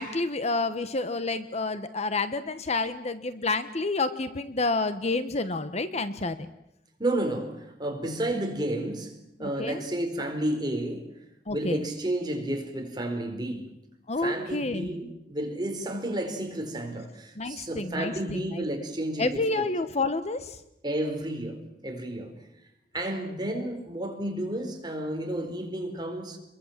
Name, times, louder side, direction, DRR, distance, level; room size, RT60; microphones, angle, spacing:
voice 1, 0.0-6.5 9.4-9.8 11.5-11.9 14.1-14.9 17.3-18.6 19.2-20.6, left 3 dB, 40° left, 1.2 m, -29 dB
voice 2, 7.0-11.1 11.5-13.8 14.2-19.6 20.8-22.4 22.9-26.4, right 1 dB, 25° right, 4.6 m, -31 dB
28.5 x 22.5 x 7.5 m
head